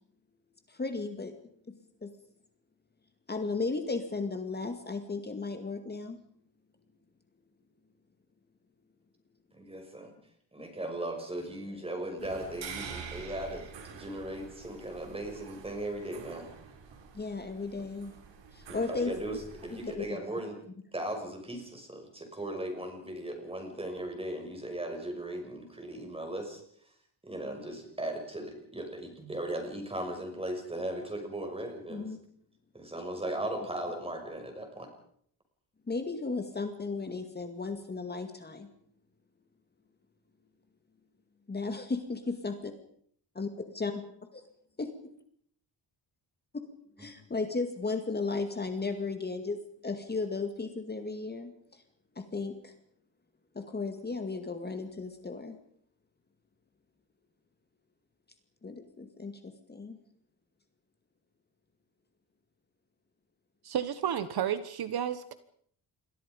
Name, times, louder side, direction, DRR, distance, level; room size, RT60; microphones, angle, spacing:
voice 1, 0.7-1.3 1.7-2.1 3.3-6.2 17.1-18.1 18.5-19.1 19.7-20.1 31.9-32.2 35.9-38.7 41.5-42.7 43.3-44.0 44.3-44.4 44.8-45.1 46.6-46.7 47.0-51.8 52.2-52.7 53.5-55.6 58.6-60.0, left 3 dB, 25° left, 6 dB, 2.2 m, -35 dB
voice 2, 9.5-10.1 10.5-16.5 18.7-19.4 19.6-20.6 20.9-26.6 27.2-32.1 32.7-34.9, right 1 dB, 15° right, 4 dB, 6.2 m, -37 dB
sound 1, 12.2-20.0, right 6 dB, 85° right, 4.6 m, -47 dB
voice 3, 63.6-65.3, right 9 dB, 60° right, 13 dB, 1.3 m, -31 dB
28.5 x 22.5 x 5.3 m, 0.63 s
wide cardioid pair, 160°, 43 cm